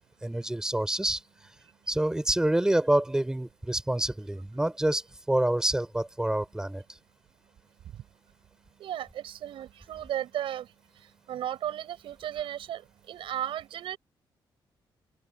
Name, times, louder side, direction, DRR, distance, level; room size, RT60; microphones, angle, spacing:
voice 1, 0.2-1.2 1.9-6.8, right 1 dB, 5° right, 6.1 m, -27 dB
voice 2, 8.8-10.7 11.3-12.8 13.1-14.0, right 11 dB, 85° right, 7.6 m, -34 dB
open air
cardioid pair, 150°, 9 cm